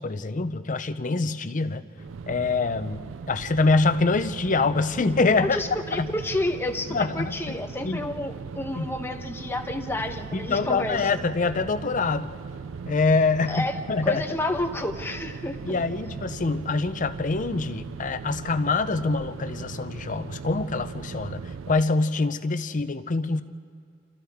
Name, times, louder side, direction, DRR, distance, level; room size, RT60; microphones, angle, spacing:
voice 1, 0.0-1.8 2.3-3.0 3.3-5.6 5.9-6.1 6.9-7.6 7.8-8.0 8.8-8.9 10.3-12.3 12.9-14.2 15.6-21.4 21.7-23.4, left 3 dB, 40° left, 11 dB, 0.6 m, -25 dB
sound 1, 2.0-21.8, right 5 dB, 80° right, 0.4 m, -39 dB
voice 2, 5.4-11.1 13.5-13.8 14.0-15.8, left 1 dB, 10° left, 5 dB, 1.0 m, -30 dB
28.5 x 27.0 x 3.6 m, 2.3 s
head